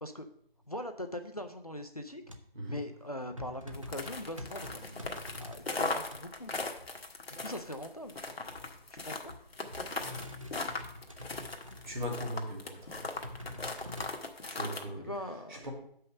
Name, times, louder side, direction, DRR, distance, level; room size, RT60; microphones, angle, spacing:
voice 1, 0.7-2.2 2.7-4.8 5.4-6.5 7.4-8.1 8.9-9.3 15.0-15.7, left 1 dB, 40° left, 7 dB, 0.5 m, -41 dB
sound 1, 2.2-2.6 3.0-6.2 6.5-6.9 8.0-9.0 9.3-12.4 12.9-14.1, left 1 dB, 35° right, 0.6 m, -47 dB
sound 2, 3.7-14.8, left 3 dB, 85° left, 1.4 m, -38 dB
sound 3, 4.4-8.1, right 1 dB, 5° right, 2.8 m, -56 dB
voice 2, 11.2-11.6 11.8-13.1 14.5-15.1 15.5-15.7, equal, 55° right, -1 dB, 2.6 m, -39 dB
6.3 x 5.6 x 6.6 m, 0.67 s
figure-of-eight pair, 175°, 30 cm